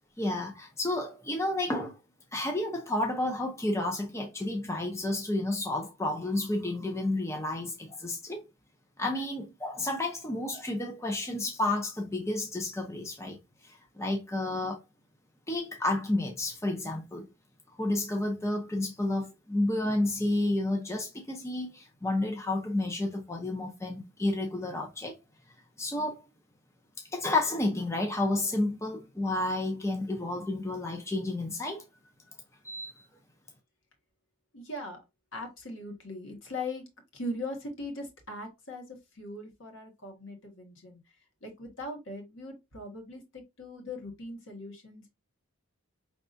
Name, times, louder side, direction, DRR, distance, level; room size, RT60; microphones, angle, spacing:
voice 1, 0.2-2.0 2.3-8.4 9.0-13.4 13.6-14.8 15.5-17.3 17.8-25.1 25.8-26.1 27.1-31.8 32.6-33.0, left 2 dB, 15° left, 0.6 m, -31 dB
voice 2, 34.5-35.0 35.3-36.8 37.1-41.0 41.4-45.1, left 1 dB, 60° left, 1.6 m, -40 dB
5.3 x 3.5 x 2.6 m
head